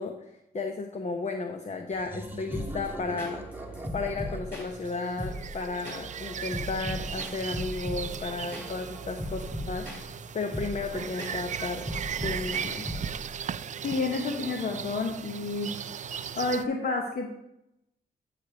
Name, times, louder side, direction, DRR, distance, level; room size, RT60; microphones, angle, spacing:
voice 1, 0.0-3.4 3.9-11.9 12.2-12.9, left 3 dB, 40° left, 5 dB, 0.8 m, -34 dB
sound 1, 1.9-6.5, right 1 dB, 10° right, 1.1 m, -43 dB
sound 2, 2.5-13.4, equal, 10° left, 2.9 m, -38 dB
sound 3, 4.7-16.7, right 8 dB, 45° right, 0.4 m, -37 dB
voice 2, 13.8-15.7 16.0-16.1 16.4-17.3, left 3 dB, 60° left, 2 dB, 1.1 m, -30 dB
10.0 x 3.4 x 6.9 m, 0.83 s
cardioid pair, 80°, 18 cm